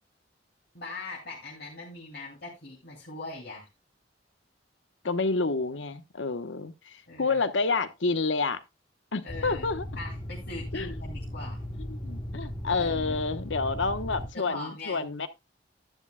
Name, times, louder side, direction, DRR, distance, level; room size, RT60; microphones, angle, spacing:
voice 1, 0.7-3.7 7.1-7.4 9.2-9.6 10.0-11.6 12.8-13.2 14.3-15.1, left 2 dB, 60° left, 2.6 m, -41 dB
voice 2, 5.0-8.6 9.1-9.9 10.7-11.0 11.8-15.3, left 3 dB, 85° left, 1.0 m, -29 dB
sound 1, 9.3-14.3, equal, 30° left, 1.2 m, -37 dB
11.5 x 10.0 x 2.2 m
head